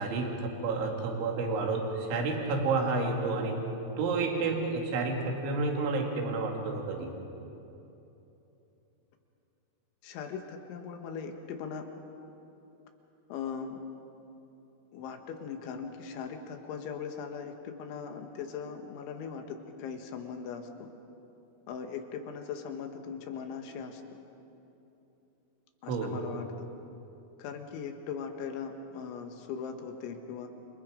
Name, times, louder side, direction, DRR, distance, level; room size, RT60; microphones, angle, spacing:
voice 1, 0.0-3.6 4.0-7.1 25.9-26.2, right 3 dB, 65° right, 1 dB, 4.6 m, -30 dB
voice 2, 10.0-11.8 13.3-13.8 14.9-20.9 21.7-24.0 25.8-26.7 27.4-30.5, left 6 dB, 70° left, 4 dB, 3.7 m, -39 dB
29.0 x 26.5 x 5.1 m, 3.0 s
omnidirectional pair, 5.9 m